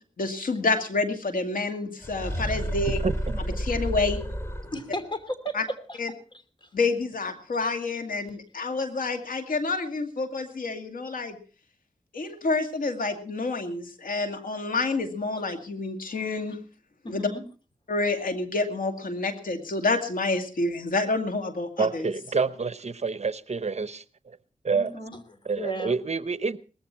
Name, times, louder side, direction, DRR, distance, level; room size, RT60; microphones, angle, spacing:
voice 1, 0.2-3.0 3.6-4.2 5.5-5.6 6.0-6.1 6.7-11.4 12.1-16.6 17.1-17.3 17.9-22.1, left 3 dB, 80° left, 6 dB, 2.3 m, -28 dB
sound 1, 2.0-5.0, equal, 20° left, 2.5 m, -30 dB
voice 2, 3.0-3.4 21.8-24.4 24.6-24.9 25.5-26.6, right 4 dB, 50° right, 14 dB, 0.9 m, -28 dB
voice 3, 4.7-5.6 5.9-6.0 6.6-6.7 17.0-17.4 24.7-26.0, equal, 35° left, 9 dB, 3.0 m, -35 dB
19.5 x 14.5 x 4.4 m, 0.38 s
wide cardioid pair, 70°, 14 cm